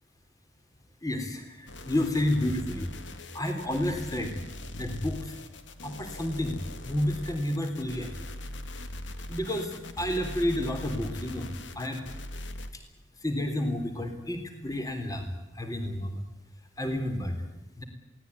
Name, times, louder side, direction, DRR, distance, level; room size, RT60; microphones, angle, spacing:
voice 1, 1.0-2.9 3.3-4.4 4.7-5.4 5.8-8.1 9.3-12.1 13.2-15.3 15.5-16.2 16.8-17.4 17.8-17.9, left 1 dB, 20° left, 5 dB, 3.5 m, -30 dB
sound 1, 1.7-12.7, left 1 dB, 75° left, 2.2 m, -41 dB
23.5 x 18.0 x 9.6 m, 0.96 s
head